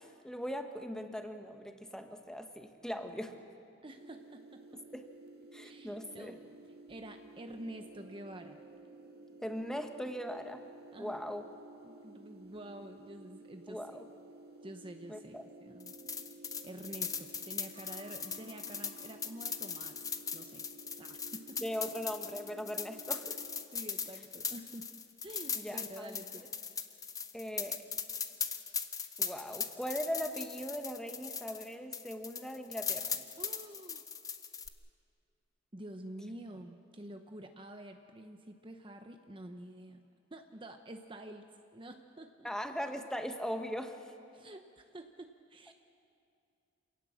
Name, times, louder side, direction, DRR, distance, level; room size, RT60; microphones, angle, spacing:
voice 1, 0.0-3.4 4.7-5.1 5.5-6.4 9.4-10.6 11.0-11.4 13.7-14.0 15.1-15.4 21.6-23.4 25.5-26.2 27.3-27.8 29.2-33.2 42.4-44.0, equal, 5° left, 5 dB, 1.3 m, -40 dB
voice 2, 3.8-4.8 5.6-6.4 6.9-8.6 10.9-11.2 11.8-13.9 14.6-15.9 16.6-20.0 20.3-20.6 21.0-21.6 23.7-24.9 25.2-26.4 33.4-34.0 35.7-40.0 40.3-41.5 41.7-42.5 44.3-45.7, right 1 dB, 25° right, 6 dB, 0.8 m, -48 dB
sound 1, 4.0-23.6, right 2 dB, 55° right, 1.9 m, -54 dB
sound 2, 15.8-31.7 31.9-34.7, left 6 dB, 20° left, 0.9 m, -39 dB
27.5 x 18.0 x 7.3 m, 2.5 s
head